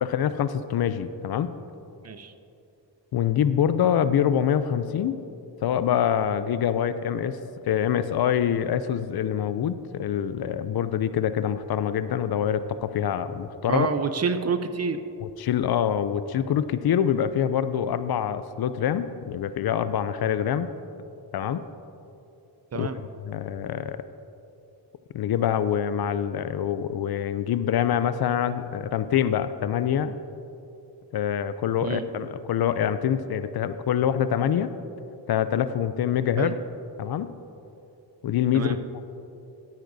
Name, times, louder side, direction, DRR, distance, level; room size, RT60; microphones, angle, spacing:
voice 1, 0.0-1.5 3.1-5.2 5.6-7.4 7.6-13.9 15.4-20.7 21.3-21.6 22.7-22.9 23.3-24.0 25.1-30.2 31.1-34.7 35.3-36.5 37.0-37.3 38.2-38.8, left 9 dB, 60° left, 12 dB, 0.5 m, -25 dB
voice 2, 13.7-15.0 22.7-23.0 31.8-32.0 36.4-36.5 38.5-38.8, right 5 dB, 35° right, 10 dB, 0.5 m, -27 dB
13.5 x 9.6 x 2.7 m, 2.8 s
cardioid pair, 95°, 43 cm